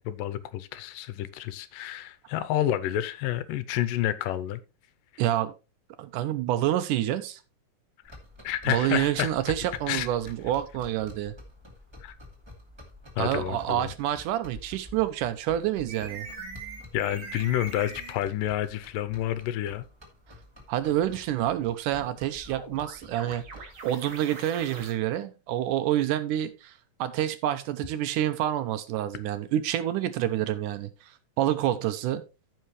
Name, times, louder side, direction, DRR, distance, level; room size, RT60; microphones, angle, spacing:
voice 1, 0.0-4.6 8.4-9.3 9.9-10.1 12.0-12.1 13.2-13.9 16.9-19.8, left 12 dB, 80° left, 2.2 m, -29 dB
voice 2, 5.2-5.5 6.0-7.4 8.7-11.3 13.2-16.3 20.7-26.7 27.0-32.2, right 12 dB, 75° right, 2.1 m, -28 dB
sound 1, 8.0-23.8, left 1 dB, 10° right, 1.8 m, -49 dB
sound 2, 15.9-18.2 21.9-24.9, right 4 dB, 45° right, 2.3 m, -42 dB
15.0 x 5.5 x 3.1 m
omnidirectional pair, 4.0 m